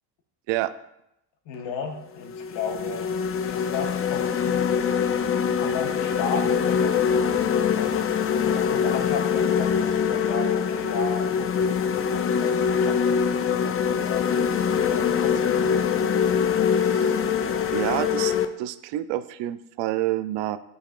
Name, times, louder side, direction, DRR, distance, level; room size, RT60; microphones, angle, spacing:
voice 1, 1.4-3.1 3.5-5.1 5.6-7.0 7.7-13.2 13.6-14.5 14.7-15.9, left 4 dB, 65° left, 4 dB, 1.2 m, -35 dB
sound 1, 1.5-1.7 2.3-18.4, left 7 dB, 30° left, 0.5 m, -23 dB
voice 2, 16.7-17.2 17.7-20.6, right 14 dB, 60° right, 14 dB, 0.5 m, -28 dB
9.9 x 4.1 x 2.5 m, 0.83 s
supercardioid pair, 70°, 49 cm